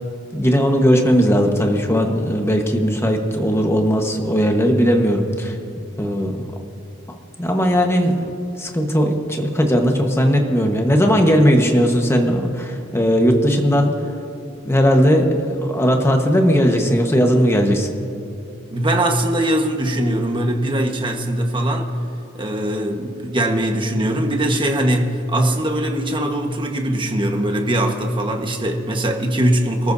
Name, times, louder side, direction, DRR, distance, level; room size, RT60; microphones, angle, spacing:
voice 1, 0.3-5.5 6.0-6.3 7.4-8.3 8.6-13.9 14.6-17.9, equal, 15° left, 2 dB, 1.3 m, -17 dB
voice 2, 18.7-21.9 22.3-29.9, right 1 dB, 25° right, 2 dB, 1.4 m, -21 dB
28.0 x 14.0 x 2.7 m, 2.8 s
head